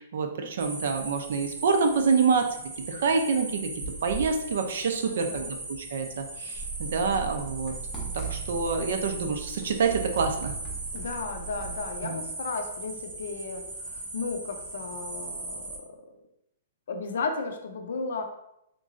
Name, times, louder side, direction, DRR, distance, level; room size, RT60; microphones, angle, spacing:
voice 1, 0.0-2.6 2.9-3.7 4.0-7.7 8.1-10.5 12.0-12.2, right 5 dB, 55° right, 5 dB, 0.5 m, -27 dB
sound 1, 0.6-15.8, right 2 dB, 35° right, 0.9 m, -39 dB
voice 2, 5.0-5.5 10.9-15.8 16.9-18.3, left 4 dB, 60° left, 5 dB, 0.5 m, -34 dB
sound 2, 6.5-12.0, right 7 dB, 10° left, 0.6 m, -39 dB
3.6 x 3.0 x 2.5 m, 0.82 s
hypercardioid pair, 175°, 0 cm